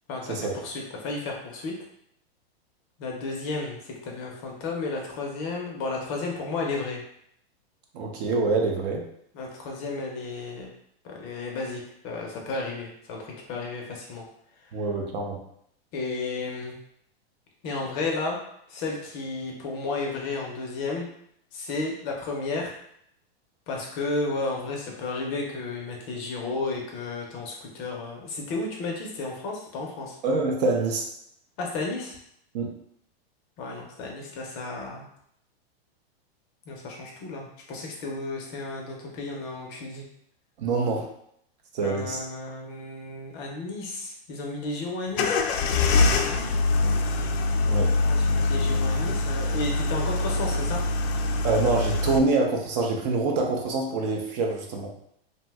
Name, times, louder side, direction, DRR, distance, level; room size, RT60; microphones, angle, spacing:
voice 1, 0.1-1.7 3.0-7.0 9.3-10.7 11.0-14.2 15.9-16.8 17.6-18.4 18.7-21.1 21.5-22.8 23.7-30.1 31.6-32.2 33.6-35.1 36.7-40.1 41.8-45.4 48.0-50.8, left 3 dB, 30° left, -1 dB, 0.5 m, -33 dB
voice 2, 7.9-9.0 14.7-15.4 30.2-31.1 32.5-32.7 40.6-41.1 41.7-42.2 47.7-47.9 51.4-54.9, right 3 dB, 45° right, 1 dB, 0.5 m, -25 dB
sound 1, 45.1-52.2, left 3 dB, 80° left, 0.5 m, -24 dB
2.7 x 2.1 x 3.3 m, 0.71 s
supercardioid pair, 150°, 31 cm